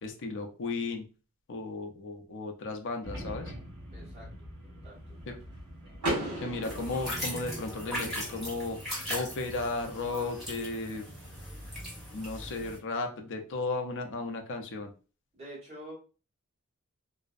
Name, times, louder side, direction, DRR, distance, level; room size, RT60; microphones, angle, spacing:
voice 1, 0.0-1.1 1.5-3.5 5.3-5.4 6.4-11.1 12.1-14.9, left 3 dB, 55° left, 5 dB, 0.5 m, -35 dB
sound 1, 3.0-8.7, equal, 45° right, 1.4 m, -45 dB
voice 2, 3.9-4.5 4.8-5.0 5.2-5.4 15.3-15.9, right 1 dB, 30° right, -5 dB, 1.3 m, -47 dB
Car / Door, 6.0-7.9, right 1 dB, 80° right, 1.1 m, -35 dB
sound 2, 6.6-12.8, equal, ahead, 1.1 m, -39 dB
2.6 x 2.0 x 2.4 m, 0.34 s
head